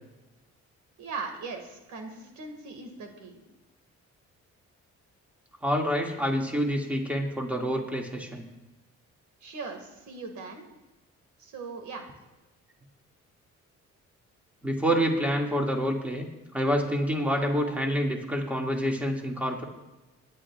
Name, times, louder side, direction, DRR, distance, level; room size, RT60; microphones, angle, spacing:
voice 1, 1.0-3.4 9.4-10.7 11.4-12.1, right 4 dB, 75° right, 4 dB, 2.0 m, -39 dB
voice 2, 5.6-8.5 14.6-16.3 16.5-19.6, equal, 5° right, 0 dB, 2.2 m, -27 dB
22.0 x 11.0 x 2.4 m, 1.1 s
cardioid pair, 90°, 30 cm